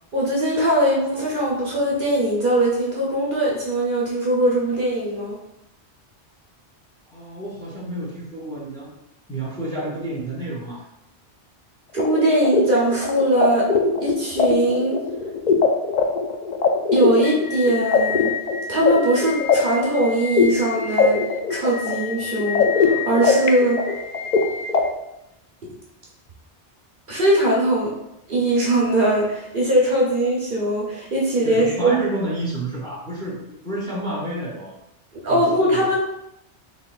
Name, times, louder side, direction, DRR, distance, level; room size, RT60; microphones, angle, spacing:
voice 1, 0.1-5.4 11.9-13.7 14.0-15.0 16.9-18.3 18.7-21.2 21.5-23.8 27.1-27.9 28.3-32.0 35.2-36.0, right 1 dB, 50° right, -4 dB, 0.9 m, -21 dB
voice 2, 7.1-8.9 9.3-10.9 31.4-33.4 33.6-34.7 35.3-36.0, right 2 dB, 5° left, -6 dB, 1.0 m, -29 dB
sound 1, 12.0-24.8, left 5 dB, 60° left, 0.4 m, -21 dB
4.0 x 4.0 x 2.4 m, 0.84 s
omnidirectional pair, 1.2 m